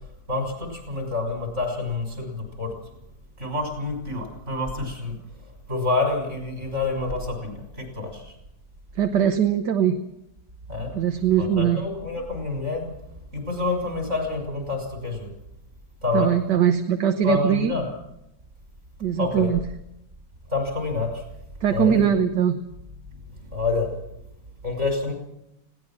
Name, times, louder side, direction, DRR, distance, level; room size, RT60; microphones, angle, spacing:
voice 1, 0.3-2.7 3.4-5.2 5.7-8.3 10.7-10.9 11.4-12.9 13.3-15.3 16.0-16.3 17.2-17.9 19.1-19.5 20.5-21.2 21.7-22.1 23.5-23.9 24.6-25.1, left 3 dB, 35° right, 4 dB, 6.1 m, -27 dB
voice 2, 9.0-10.0 10.9-11.8 16.1-17.7 19.0-19.6 21.6-22.6, right 9 dB, 60° right, 7 dB, 1.5 m, -21 dB
20.5 x 17.5 x 7.5 m, 0.87 s
omnidirectional pair, 2.2 m